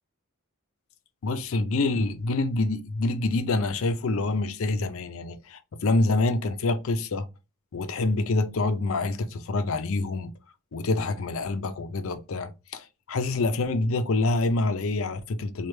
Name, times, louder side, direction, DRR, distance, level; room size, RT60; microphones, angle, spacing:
voice 1, 1.2-7.3 7.7-10.3 10.7-15.7, left 2 dB, 65° left, 0.5 m, -26 dB
3.1 x 2.3 x 3.2 m
head